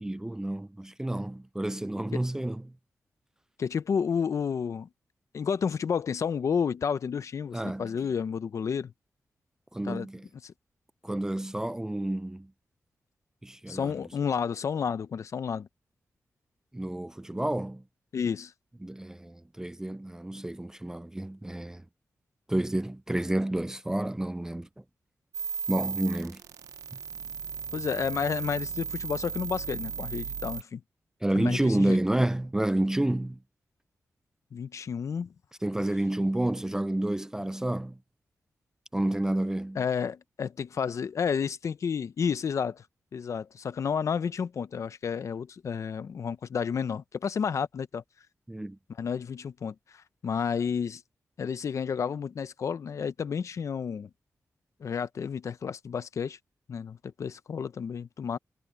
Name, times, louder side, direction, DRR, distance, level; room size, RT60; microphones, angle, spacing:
voice 1, 0.0-2.7 7.5-7.9 9.7-10.2 11.0-12.5 13.4-13.9 16.7-17.8 18.8-21.8 22.5-24.7 25.7-26.4 31.2-33.4 35.6-38.0 38.9-39.8 48.5-48.8, right 1 dB, 10° right, 0.3 m, -29 dB
voice 2, 3.6-4.9 5.3-8.9 9.8-10.1 10.4-10.5 13.7-15.7 18.1-18.5 27.7-30.8 31.3-32.0 34.5-35.3 39.8-42.8 43.1-48.0 49.0-51.0 51.4-54.1 54.8-56.4 56.7-58.4, left 6 dB, 65° left, 0.7 m, -31 dB
sound 1, 25.3-30.6, right 6 dB, 90° right, 0.7 m, -36 dB
wide cardioid pair, 125°, 6 cm